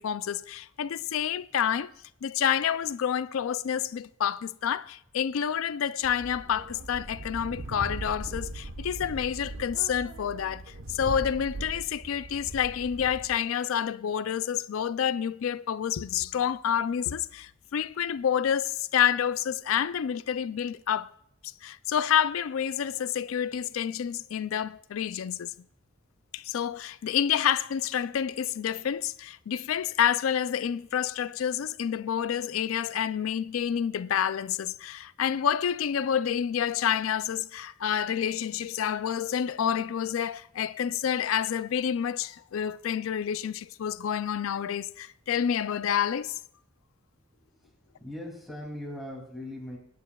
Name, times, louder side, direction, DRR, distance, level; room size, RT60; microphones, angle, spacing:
voice 1, 0.0-1.9 2.2-21.1 21.6-25.5 26.3-46.4, left 8 dB, 80° left, 0.4 m, -28 dB
sound 1, 6.0-13.3, right 2 dB, 80° right, 1.1 m, -40 dB
voice 2, 47.5-49.8, left 1 dB, ahead, 2.7 m, -40 dB
26.0 x 9.4 x 2.3 m
head